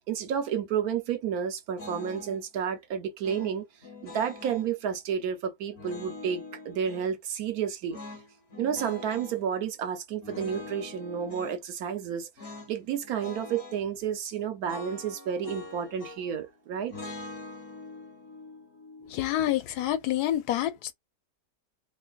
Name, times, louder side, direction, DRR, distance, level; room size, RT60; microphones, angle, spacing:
voice 1, 0.1-3.6 4.0-8.0 8.6-12.3 12.7-16.9, right 8 dB, 75° right, 1.2 m, -31 dB
sound 1, 1.8-2.4 3.2-4.7 5.7-7.1 7.9-9.4 10.2-11.6 12.4-12.7 13.0-13.8 14.6-16.4 16.9-20.0, left 3 dB, 50° left, 1.1 m, -43 dB
voice 2, 19.0-20.9, left 12 dB, 85° left, 1.2 m, -28 dB
3.3 x 3.0 x 2.3 m
omnidirectional pair, 1.6 m